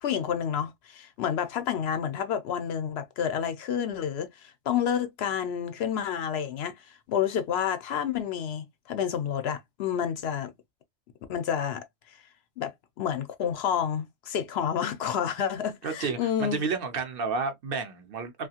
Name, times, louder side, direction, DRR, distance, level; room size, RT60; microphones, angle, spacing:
voice 1, 0.0-10.5 11.3-11.8 12.6-12.7 13.0-16.6, left 8 dB, 70° left, 0.8 m, -29 dB
voice 2, 15.8-18.5, right 5 dB, 60° right, 0.8 m, -31 dB
2.7 x 2.4 x 2.7 m
omnidirectional pair, 1.2 m